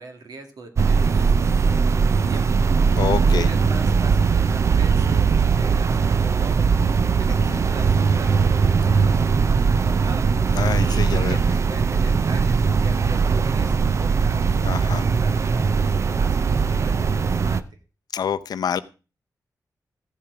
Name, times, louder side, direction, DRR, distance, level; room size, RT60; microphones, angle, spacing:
voice 1, 0.0-2.5 3.2-6.7 7.0-10.3 10.8-17.6, right 3 dB, 80° right, 5 dB, 2.1 m, -41 dB
sound 1, 0.8-17.6, right 5 dB, 45° right, 0.5 m, -20 dB
voice 2, 3.0-3.5 7.5-7.6 10.5-11.4 14.6-15.0 18.1-18.8, left 7 dB, 85° left, 14 dB, 0.6 m, -26 dB
15.0 x 7.3 x 4.8 m, 0.33 s
wide cardioid pair, 150°, 7 cm